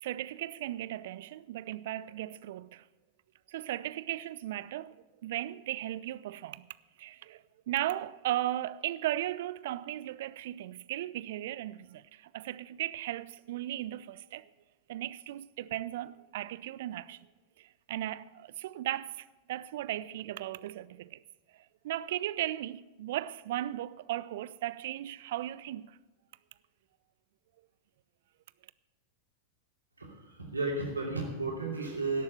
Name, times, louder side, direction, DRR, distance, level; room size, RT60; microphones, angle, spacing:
voice 1, 0.0-2.8 3.5-6.7 7.0-14.5 14.9-17.3 17.6-21.2 21.5-26.0, right 14 dB, 55° right, 0.4 m, -36 dB
voice 2, 30.0-32.2, right 3 dB, 80° right, 2.8 m, -33 dB
17.0 x 7.1 x 6.9 m
figure-of-eight pair, 90°, 0 cm